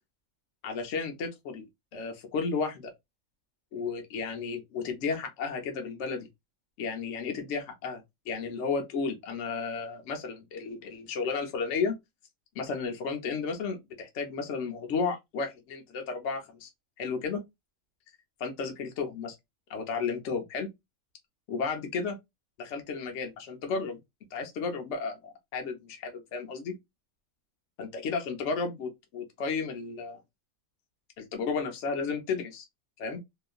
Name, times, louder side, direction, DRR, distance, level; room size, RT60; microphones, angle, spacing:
voice 1, 0.6-1.7 1.9-2.9 3.7-6.3 6.8-12.0 12.6-16.7 17.0-17.4 18.4-19.4 19.7-20.7 21.5-22.2 22.6-24.0 24.3-26.7 27.8-30.2 31.2-32.7 33.0-33.2, left 5 dB, 65° left, 0.9 m, -33 dB
2.8 x 2.4 x 2.2 m
omnidirectional pair, 1.4 m